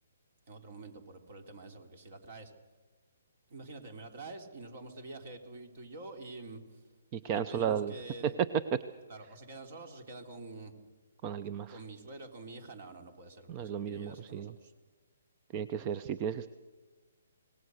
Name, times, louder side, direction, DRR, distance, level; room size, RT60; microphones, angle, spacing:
voice 1, 0.5-2.5 3.5-6.8 7.3-8.4 9.1-10.7 11.7-14.7, right 2 dB, 50° right, 6 dB, 3.6 m, -47 dB
voice 2, 7.1-7.9 8.2-8.3 11.2-11.8 13.5-14.5 15.5-16.5, right 8 dB, 30° right, 13 dB, 0.7 m, -34 dB
25.5 x 19.5 x 6.5 m, 1.3 s
hypercardioid pair, 140°, 0 cm